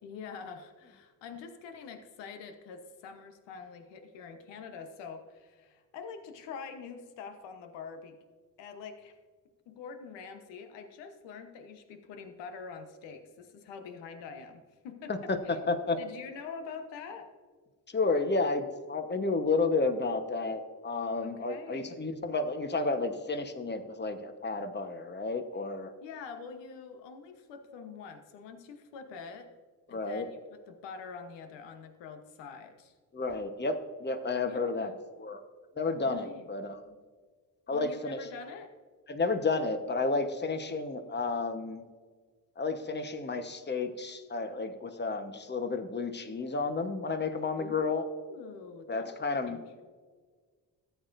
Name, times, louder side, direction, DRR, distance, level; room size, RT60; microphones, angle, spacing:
voice 1, 0.0-8.2 8.6-9.1 9.7-15.6 16.0-17.3 21.2-22.0 26.0-29.5 29.9-32.9 34.4-35.0 36.0-36.4 37.7-38.7 47.6-49.2 49.5-49.6, left 5 dB, 85° left, 7 dB, 1.1 m, -45 dB
voice 2, 15.1-16.0 17.9-25.9 29.9-30.3 33.1-34.9 35.2-35.4 35.8-36.8 37.7-38.2 39.1-41.8 42.6-48.0 48.9-49.6, left 3 dB, 25° left, 8 dB, 1.2 m, -31 dB
14.0 x 9.3 x 2.6 m, 1.5 s
supercardioid pair, 55°, 42 cm